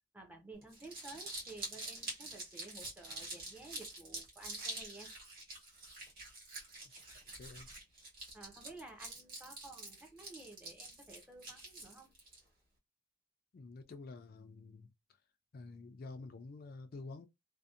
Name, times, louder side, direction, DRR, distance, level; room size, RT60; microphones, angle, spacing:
voice 1, 0.1-5.1 8.3-12.1, right 2 dB, 10° right, 0.5 m, -53 dB
Crumpling crinkling, 0.6-12.4, right 2 dB, 50° right, 1.2 m, -46 dB
voice 2, 13.5-14.9 15.5-17.3, left 3 dB, 50° left, 0.4 m, -49 dB
2.6 x 2.1 x 2.3 m
head